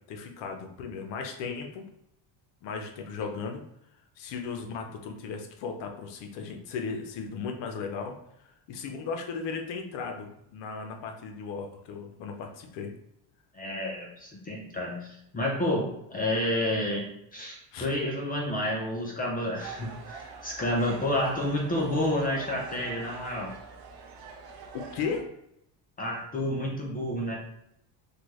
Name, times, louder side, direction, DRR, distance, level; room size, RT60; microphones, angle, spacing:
voice 1, 0.0-1.8 2.6-3.6 4.2-8.2 8.7-12.9 17.7-17.9 24.7-25.3, left 5 dB, 60° left, 4 dB, 0.6 m, -36 dB
voice 2, 13.5-23.5 26.0-27.4, left 1 dB, 20° left, -1 dB, 0.4 m, -30 dB
sound 1, 19.6-25.2, right 5 dB, 50° right, 0.6 m, -45 dB
3.2 x 2.2 x 3.0 m, 0.77 s
cardioid pair, 125°, 48 cm